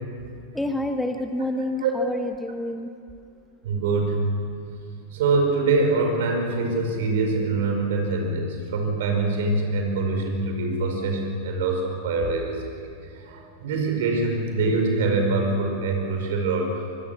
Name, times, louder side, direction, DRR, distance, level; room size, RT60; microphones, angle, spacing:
voice 1, 0.5-2.9, left 1 dB, 5° left, 7 dB, 1.1 m, -28 dB
voice 2, 1.8-2.2 3.6-4.2 5.1-12.6 13.3-16.7, right 3 dB, 55° right, 3 dB, 5.2 m, -24 dB
25.0 x 22.0 x 7.2 m, 2.3 s
figure-of-eight pair, 90°, 0 cm